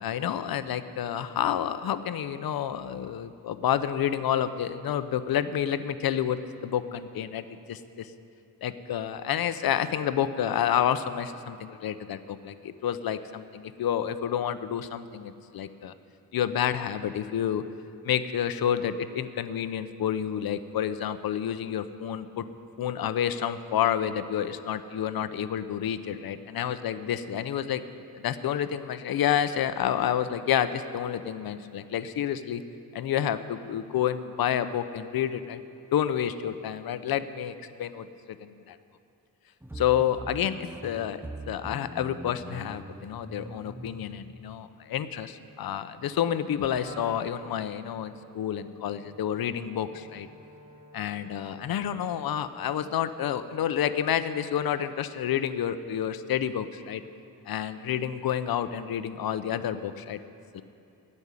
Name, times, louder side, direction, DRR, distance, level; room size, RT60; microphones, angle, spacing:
voice 1, 0.0-8.1 8.6-15.9 16.3-17.6 18.0-22.5 22.8-27.8 28.1-32.6 32.9-35.6 35.9-37.5 37.8-38.8 39.7-41.2 41.5-50.3 50.9-57.0 57.5-60.2 60.5-60.6, left 9 dB, 70° left, 12 dB, 0.7 m, -29 dB
sound 1, 39.6-44.6, right 1 dB, 5° right, 0.5 m, -42 dB
Wind instrument woodwind instrument, 46.7-53.1, right 1 dB, 65° right, 2.3 m, -50 dB
15.5 x 5.4 x 9.6 m, 2.7 s
cardioid pair, 100°, 37 cm